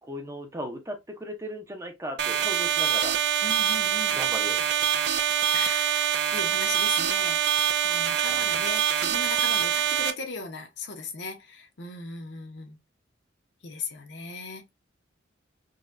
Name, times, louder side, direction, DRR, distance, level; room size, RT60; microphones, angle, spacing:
voice 1, 0.0-3.2 4.1-4.9 8.1-8.6, equal, 15° right, 0.6 m, -37 dB
sound 1, 2.2-10.1, right 9 dB, 60° right, 0.4 m, -25 dB
voice 2, 3.4-4.2 5.0-12.8 13.6-14.7, left 4 dB, 65° left, 0.8 m, -38 dB
4.0 x 2.2 x 2.5 m
head